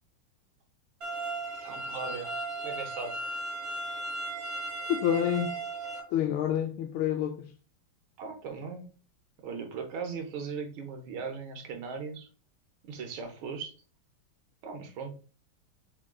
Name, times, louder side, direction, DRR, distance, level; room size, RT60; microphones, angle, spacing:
sound 1, 1.0-6.0, right 2 dB, 60° right, 0.6 m, -36 dB
voice 1, 1.6-3.5 8.2-8.8 9.4-12.3 12.9-13.7 14.6-15.2, right 5 dB, 80° right, 1.8 m, -38 dB
voice 2, 4.9-5.5 6.1-7.5, left 9 dB, 80° left, 1.3 m, -28 dB
5.2 x 3.7 x 2.3 m
omnidirectional pair, 2.3 m